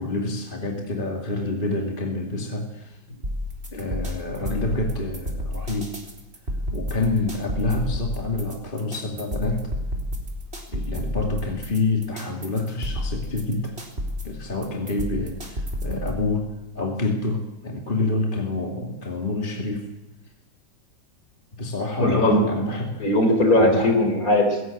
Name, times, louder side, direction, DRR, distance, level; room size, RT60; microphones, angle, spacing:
voice 1, 0.0-3.0 3.7-5.9 6.7-9.7 10.7-13.7 14.2-16.5 16.7-19.9 21.5-23.0 23.6-23.9, left 2 dB, 25° left, 1 dB, 2.5 m, -27 dB
sound 1, 3.2-16.2, equal, 30° right, 4.2 m, -31 dB
voice 2, 22.0-22.5 23.0-24.6, left 1 dB, 45° left, 5 dB, 4.6 m, -19 dB
21.5 x 17.5 x 8.8 m, 1.0 s
omnidirectional pair, 2.1 m